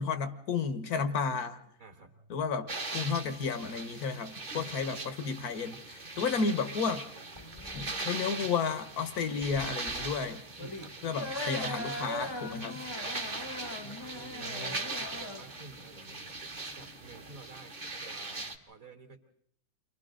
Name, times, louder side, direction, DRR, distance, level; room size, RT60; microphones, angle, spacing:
voice 1, 0.0-1.6 2.3-7.0 7.7-10.4 11.0-12.8 14.4-14.7, left 5 dB, 80° left, 11 dB, 1.8 m, -32 dB
voice 2, 1.8-2.3 4.5-5.1 6.2-6.4 10.6-11.0 13.0-13.5 13.8-14.5 15.0-16.3 16.7-19.2, right 3 dB, 60° right, 0 dB, 2.9 m, -51 dB
sound 1, 2.7-18.6, right 3 dB, 30° right, 1.4 m, -40 dB
sound 2, 7.3-17.4, left 1 dB, 20° left, 0.8 m, -42 dB
30.0 x 24.5 x 3.9 m, 0.69 s
omnidirectional pair, 1.6 m